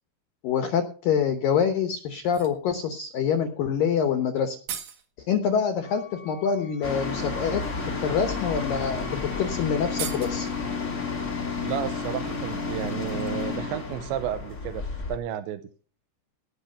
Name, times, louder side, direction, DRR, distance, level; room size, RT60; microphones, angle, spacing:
voice 1, 0.4-4.6 5.3-7.6 8.0-10.5, left 7 dB, 75° left, 8 dB, 2.1 m, -26 dB
sound 1, 2.2-2.6 4.1-4.2 4.4-5.1 6.5-6.6 7.2-7.5 8.3-8.4 8.8-8.9 9.2-9.3 9.8-10.6 11.7-13.7 14.0-14.1, right 9 dB, 55° right, 2.5 m, -40 dB
Wind instrument woodwind instrument, 5.8-10.7, left 3 dB, 15° left, 1.2 m, -52 dB
sound 2, 6.8-15.2, left 4 dB, 50° left, 0.8 m, -31 dB
voice 2, 11.6-15.7, right 10 dB, 75° right, 9 dB, 3.0 m, -32 dB
18.0 x 6.5 x 5.5 m, 0.39 s
omnidirectional pair, 5.5 m